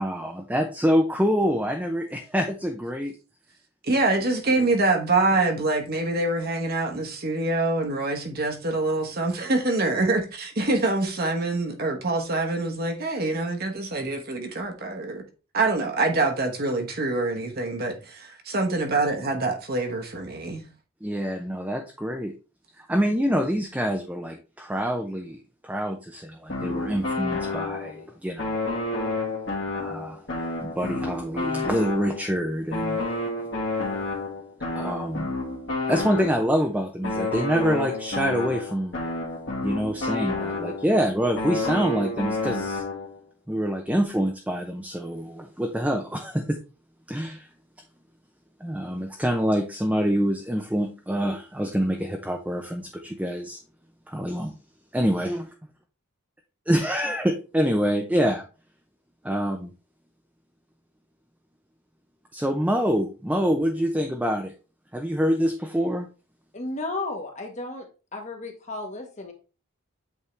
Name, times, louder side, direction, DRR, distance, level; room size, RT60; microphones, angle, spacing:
voice 1, 0.0-3.1 21.0-22.3 22.8-25.4 25.6-28.6 29.7-30.2 30.6-33.1 34.7-35.3 35.9-38.9 39.6-42.8 43.5-46.6 47.1-47.5 48.6-53.6 54.1-54.5 54.9-55.5 56.7-58.4 59.2-59.7 62.3-64.5 64.9-66.1, equal, 5° right, 0.6 m, -26 dB
voice 2, 3.8-15.2 15.5-20.6, right 2 dB, 45° right, 1.2 m, -25 dB
sound 1, 26.5-28.0 28.4-32.3 32.7-36.6 37.0-41.0 41.4-43.2, left 2 dB, 60° left, 1.9 m, -30 dB
voice 3, 66.5-67.8 68.1-69.3, left 2 dB, 35° left, 1.2 m, -33 dB
8.2 x 3.6 x 3.2 m
head